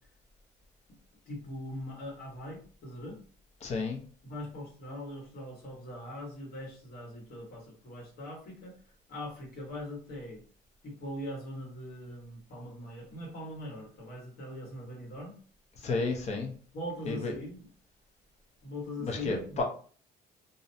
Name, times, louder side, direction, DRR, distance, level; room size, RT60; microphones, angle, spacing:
voice 1, 1.3-3.2 4.2-8.8 9.1-10.4 10.8-15.4 16.7-17.7 18.6-19.6, left 1 dB, 65° left, -2 dB, 1.3 m, -41 dB
voice 2, 3.6-4.0 15.8-16.5 17.1-17.3 19.0-19.6, left 3 dB, 40° left, 2 dB, 0.6 m, -31 dB
2.5 x 2.1 x 2.6 m, 0.43 s
cardioid pair, 110°, 17 cm